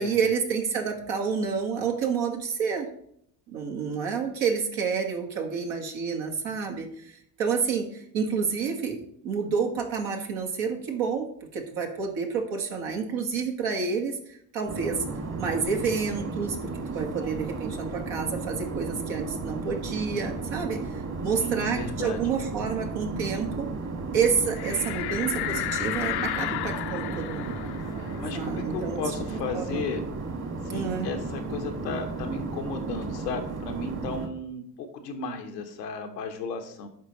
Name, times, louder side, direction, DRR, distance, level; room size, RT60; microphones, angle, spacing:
voice 1, 0.0-2.9 3.5-15.0 15.4-23.7 24.1-27.6 28.3-29.0 29.3-29.8 30.7-31.2, right 5 dB, 75° right, 3 dB, 1.4 m, -29 dB
sound 1, 14.7-34.3, right 4 dB, 40° right, 1.7 m, -34 dB
voice 2, 21.4-22.2 28.1-30.1 30.6-36.9, left 3 dB, 90° left, 5 dB, 0.9 m, -34 dB
sound 2, 24.5-29.7 30.1-30.2 30.5-32.2, left 14 dB, 55° left, 0.5 m, -34 dB
11.5 x 4.9 x 3.0 m, 0.67 s
hypercardioid pair, 45°, 47 cm